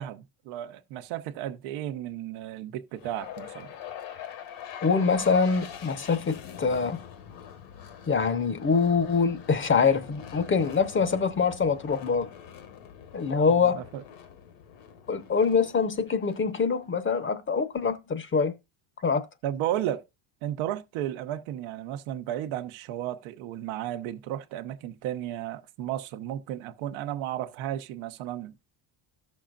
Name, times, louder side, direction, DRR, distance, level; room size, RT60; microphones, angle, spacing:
voice 1, 0.0-3.7 13.5-14.0 19.4-20.0 20.4-28.6, right 12 dB, 85° right, 0.9 m, -34 dB
sound 1, 3.0-17.1, left 9 dB, 70° left, 1.4 m, -44 dB
voice 2, 4.8-7.0 8.1-12.3 13.1-13.8 15.1-18.5 19.0-19.3, left 5 dB, 25° left, 0.7 m, -24 dB
14.0 x 6.3 x 2.4 m
cardioid pair, 125°, 47 cm